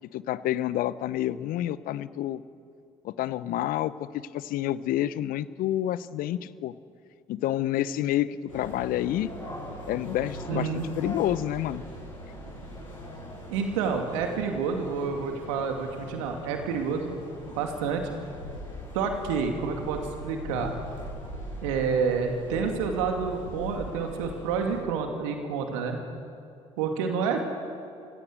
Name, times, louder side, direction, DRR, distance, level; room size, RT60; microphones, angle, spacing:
voice 1, 0.1-2.4 3.0-4.1 4.3-6.7 7.3-9.3 9.9-11.8, left 13 dB, 60° left, 17 dB, 0.9 m, -29 dB
sound 1, 8.5-24.8, equal, 90° left, 7.6 m, -41 dB
voice 2, 10.5-10.9 13.5-17.1 17.5-18.1 18.9-20.7 21.6-26.0 26.8-27.6, right 5 dB, 75° right, 4 dB, 2.5 m, -29 dB
28.5 x 17.0 x 8.1 m, 2.5 s
hypercardioid pair, 50°, 16 cm